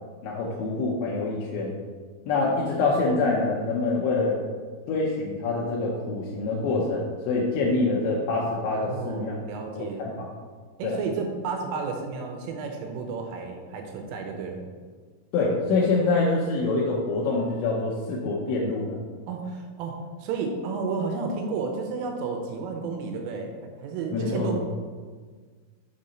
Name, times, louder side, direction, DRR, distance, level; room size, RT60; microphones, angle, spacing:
voice 1, 0.2-1.8 2.3-4.4 4.9-9.4 9.8-10.3 10.8-11.0 15.3-19.0 24.1-24.6, left 3 dB, 75° left, -4 dB, 3.0 m, -25 dB
voice 2, 8.8-10.0 10.8-14.6 19.3-24.6, right 4 dB, 90° right, 2 dB, 3.4 m, -32 dB
7.6 x 4.3 x 5.2 m, 1.5 s
omnidirectional pair, 5.8 m